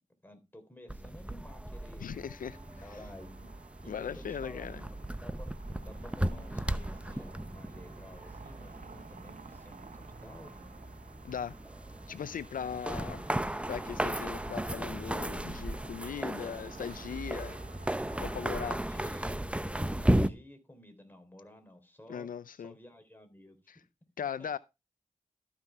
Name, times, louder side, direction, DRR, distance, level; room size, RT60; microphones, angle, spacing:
voice 1, 0.2-2.1 2.8-3.5 3.8-4.8 5.1-5.5 5.8-10.5 16.2-16.5 18.4-19.5 19.8-22.3 22.6-23.8, left 1 dB, 15° left, 3.5 m, -53 dB
sound 1, 0.9-20.3, right 1 dB, 10° right, 0.7 m, -36 dB
voice 2, 2.0-2.6 3.9-4.8 11.2-11.6 12.1-13.2 13.7-17.6 18.2-18.8 22.1-22.7 23.7-23.8 24.2-24.6, left 8 dB, 85° left, 0.4 m, -39 dB
sound 2, 2.5-18.7, right 5 dB, 70° right, 1.0 m, -53 dB
13.0 x 5.9 x 4.5 m
cardioid pair, 50°, 14 cm